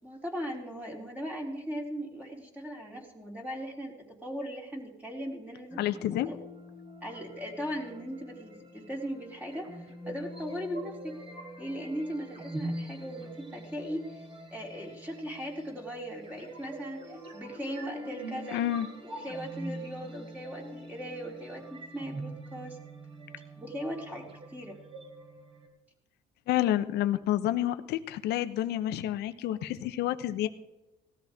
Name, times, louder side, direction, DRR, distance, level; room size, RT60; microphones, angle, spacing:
voice 1, 0.0-3.9 4.2-5.8 6.2-6.4 7.0-11.2 11.6-14.2 14.5-18.6 19.0-22.8 23.6-24.8, equal, 10° right, -1 dB, 3.4 m, -38 dB
sound 1, 5.7-25.7, right 1 dB, 35° right, 3.6 m, -44 dB
voice 2, 5.8-6.3 18.5-18.9 26.5-30.5, left 13 dB, 75° left, 11 dB, 0.9 m, -29 dB
18.0 x 13.5 x 3.6 m, 1.0 s
cardioid pair, 110°, 17 cm